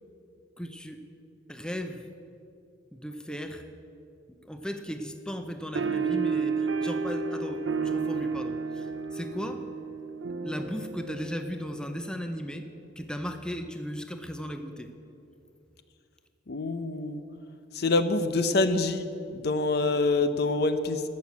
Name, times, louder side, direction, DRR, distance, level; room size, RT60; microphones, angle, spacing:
voice 1, 0.6-1.0 1.5-2.1 2.9-3.7 4.4-9.6 10.4-12.6 13.0-14.9, equal, 5° left, 6 dB, 0.6 m, -36 dB
sound 1, 5.7-12.6, right 5 dB, 80° right, 0.6 m, -32 dB
voice 2, 16.5-17.2 17.7-21.0, left 3 dB, 60° left, 10 dB, 0.7 m, -26 dB
14.0 x 6.4 x 8.4 m, 2.7 s
head